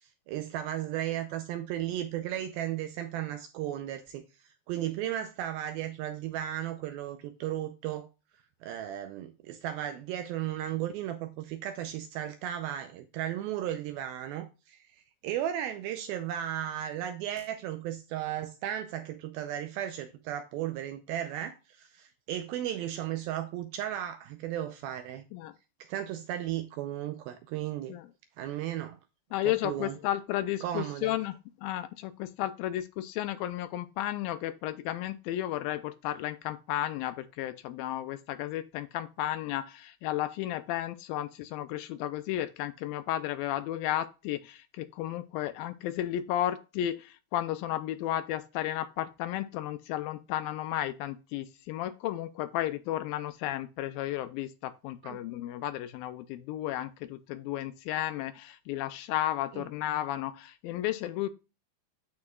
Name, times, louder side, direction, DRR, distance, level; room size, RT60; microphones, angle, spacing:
voice 1, 0.0-8.1 8.6-25.2 25.8-27.9 28.4-29.0 29.5-30.0 30.6-31.2 55.0-55.2 59.5-59.6, right 11 dB, 80° right, 2.2 m, -35 dB
voice 2, 29.3-61.3, left 13 dB, 85° left, 2.1 m, -33 dB
13.0 x 4.8 x 2.3 m
omnidirectional pair, 4.6 m